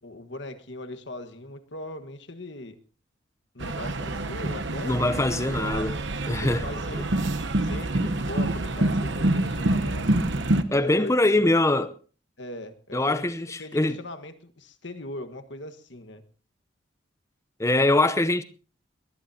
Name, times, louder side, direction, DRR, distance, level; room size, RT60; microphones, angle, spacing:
voice 1, 0.0-2.7 3.5-5.3 5.6-7.1 7.6-10.2 10.7-11.1 11.4-11.5 12.4-16.2, left 1 dB, 65° left, 1.5 m, -39 dB
sound 1, 3.6-10.6, right 1 dB, 65° right, 1.0 m, -26 dB
voice 2, 4.8-6.0 6.3-6.6 10.7-11.9 12.9-14.0 17.6-18.4, left 2 dB, 15° left, 0.7 m, -23 dB
21.0 x 19.5 x 2.8 m
head